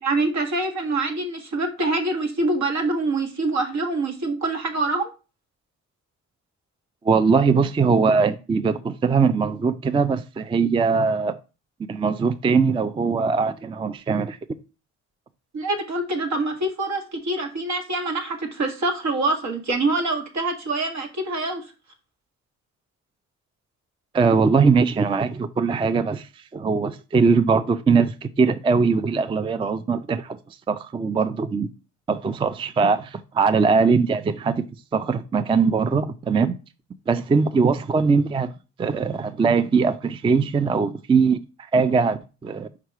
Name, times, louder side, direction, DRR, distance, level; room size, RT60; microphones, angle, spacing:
voice 1, 0.0-5.1 15.5-21.7, right 2 dB, 65° right, 1.6 m, -25 dB
voice 2, 7.0-11.4 11.9-14.4 24.1-30.4 30.7-31.7 32.1-34.6 34.9-36.5 37.1-38.5 38.8-41.4 41.7-42.7, right 5 dB, 20° right, 0.3 m, -21 dB
4.9 x 4.6 x 4.6 m
cardioid pair, 90°, 30 cm